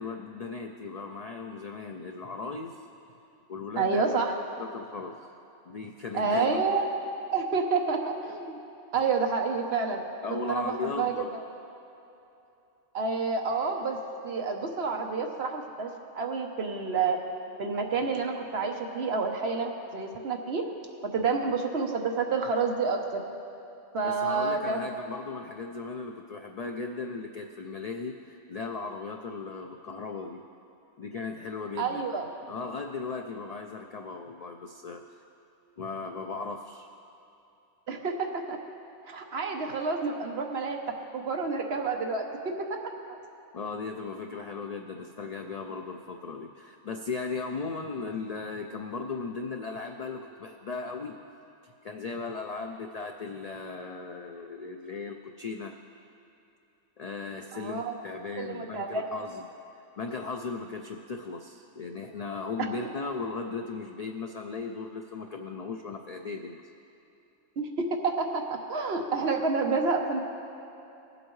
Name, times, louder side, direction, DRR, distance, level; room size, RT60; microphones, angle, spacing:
voice 1, 0.0-2.8 3.5-4.2 4.6-5.2 5.6-6.8 10.2-11.3 24.0-30.4 31.0-32.0 32.5-35.0 35.8-36.9 43.5-51.2 51.6-55.7 57.0-59.5 60.0-66.7, left 4 dB, 70° left, 4 dB, 0.3 m, -37 dB
voice 2, 3.8-4.3 6.1-6.9 7.3-8.6 8.9-10.0 10.5-11.4 12.9-14.0 14.2-15.9 16.1-17.2 17.6-20.6 21.1-23.2 23.9-24.9 31.8-32.3 37.9-38.6 39.1-42.8 57.5-58.0 58.4-59.0 67.6-68.4 68.7-70.2, right 4 dB, 60° right, 3 dB, 1.1 m, -29 dB
19.0 x 7.9 x 3.1 m, 2.9 s
omnidirectional pair, 1.3 m